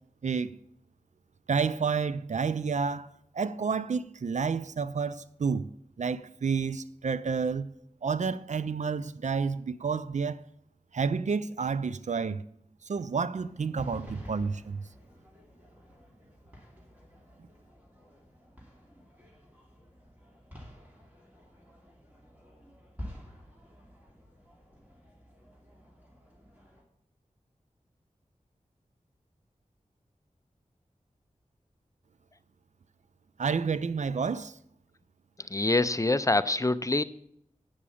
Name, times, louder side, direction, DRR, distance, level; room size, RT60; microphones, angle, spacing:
voice 1, 0.2-0.5 1.5-5.7 6.0-7.7 8.0-10.4 10.9-12.4 12.9-14.8 33.4-34.5, right 5 dB, 65° right, 0.5 m, -30 dB
sound 1, 13.3-26.8, equal, 10° right, 2.8 m, -50 dB
voice 2, 35.4-37.0, left 2 dB, 25° left, 0.5 m, -25 dB
8.7 x 6.1 x 7.0 m
wide cardioid pair, 60°, 13 cm